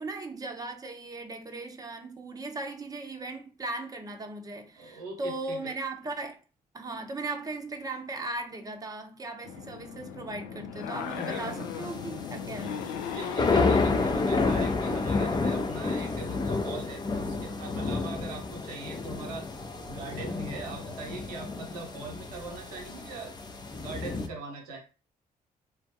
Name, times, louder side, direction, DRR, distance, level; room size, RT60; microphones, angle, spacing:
voice 1, 0.0-6.4 6.7-12.8, right 2 dB, 20° right, 0.7 m, -37 dB
voice 2, 4.8-5.7 11.1-11.6 13.1-19.5 19.9-23.3 23.8-24.8, right 3 dB, 80° right, 0.7 m, -41 dB
sound 1, 9.4-15.1, left 7 dB, 65° left, 0.4 m, -38 dB
sound 2, 11.2-24.3, left 3 dB, 20° left, 0.6 m, -30 dB
3.8 x 2.2 x 2.7 m
figure-of-eight pair, 40°, 19 cm